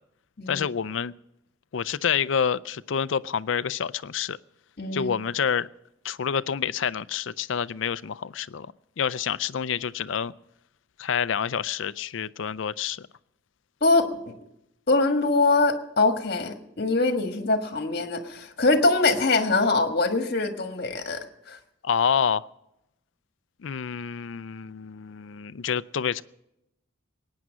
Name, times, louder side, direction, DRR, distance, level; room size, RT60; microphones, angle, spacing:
voice 1, 0.5-1.1 1.7-4.4 4.9-5.7 6.0-8.7 9.0-10.3 11.0-13.0 21.8-22.5 23.6-26.2, left 7 dB, 70° left, 0.4 m, -28 dB
voice 2, 4.8-5.1 13.8-14.3 14.9-21.6, left 3 dB, 50° left, 1.5 m, -23 dB
21.5 x 9.5 x 6.2 m
head